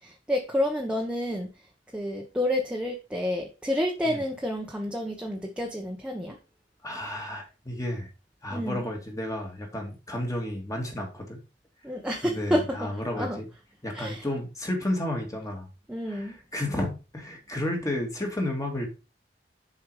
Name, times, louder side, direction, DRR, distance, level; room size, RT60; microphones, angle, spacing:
voice 1, 0.0-1.5 1.9-6.4 8.5-8.9 11.8-13.4 13.9-14.3 15.9-16.3, left 1 dB, 5° right, 0 dB, 1.1 m, -29 dB
voice 2, 6.8-8.1 8.4-11.4 12.2-13.4 13.8-15.7 16.1-18.9, left 1 dB, 20° left, 2 dB, 2.1 m, -32 dB
7.2 x 4.8 x 4.9 m, 0.32 s
head